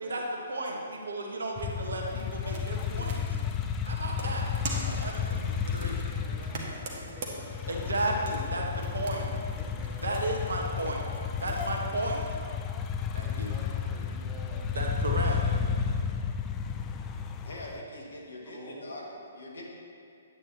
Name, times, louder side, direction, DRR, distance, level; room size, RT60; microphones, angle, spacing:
voice 1, 0.0-3.4 3.8-6.2 7.7-8.6 8.9-9.3 10.0-11.1 11.4-12.2 13.1-13.5 14.7-15.4, right 2 dB, 70° right, 0 dB, 1.2 m, -34 dB
sound 1, 1.6-17.8, left 7 dB, 20° left, 0.4 m, -32 dB
sound 2, 2.1-11.7, right 2 dB, 45° right, 1.4 m, -44 dB
voice 2, 5.8-10.5 13.2-15.5 18.4-19.2, equal, 5° right, -7 dB, 1.8 m, -49 dB
voice 3, 17.4-19.0 19.3-19.6, left 1 dB, 65° left, -2 dB, 1.9 m, -42 dB
9.6 x 8.9 x 3.0 m, 2.5 s
figure-of-eight pair, 125°, 0 cm